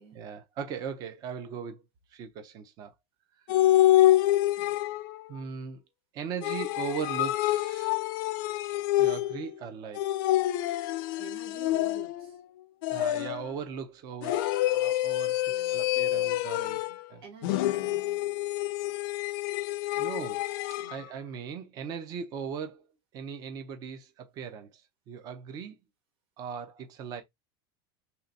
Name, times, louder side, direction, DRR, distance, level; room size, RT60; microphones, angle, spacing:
voice 1, 0.1-1.8 2.1-2.9 5.3-5.8 6.1-8.0 9.0-10.1 12.9-16.8 17.1-17.2 19.9-20.5 20.9-22.9 23.1-25.8 26.4-27.2, right 6 dB, 30° right, 0.6 m, -39 dB
sound 1, 3.5-5.2 6.4-9.5 10.0-12.3 12.8-13.5 14.2-17.0 17.4-21.0, left 14 dB, 55° left, 0.5 m, -27 dB
voice 2, 3.5-3.8 4.6-4.8 11.2-12.4 15.5-18.1 20.8-21.1, right 5 dB, 75° right, 1.7 m, -51 dB
3.4 x 2.8 x 3.8 m
supercardioid pair, 170°, 13 cm